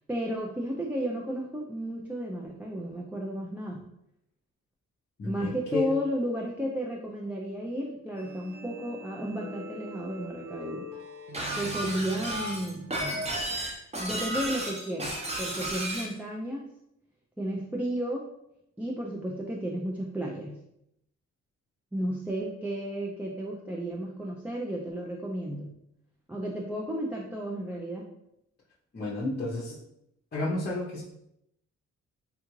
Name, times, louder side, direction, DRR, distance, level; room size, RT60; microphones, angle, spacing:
voice 1, 0.1-3.8 5.2-10.9 11.6-13.3 14.0-16.7 17.4-18.3 18.8-20.6 21.9-25.7 26.3-28.1, equal, 5° right, -3 dB, 0.4 m, -33 dB
voice 2, 5.2-5.9 28.9-29.8 30.3-31.0, left 2 dB, 35° left, -6 dB, 0.7 m, -31 dB
sound 1, 8.2-13.4, equal, 80° right, 0.8 m, -44 dB
Shatter, 11.3-16.1, right 1 dB, 20° right, 0.7 m, -33 dB
3.6 x 2.3 x 3.0 m, 0.80 s
cardioid pair, 90°, 30 cm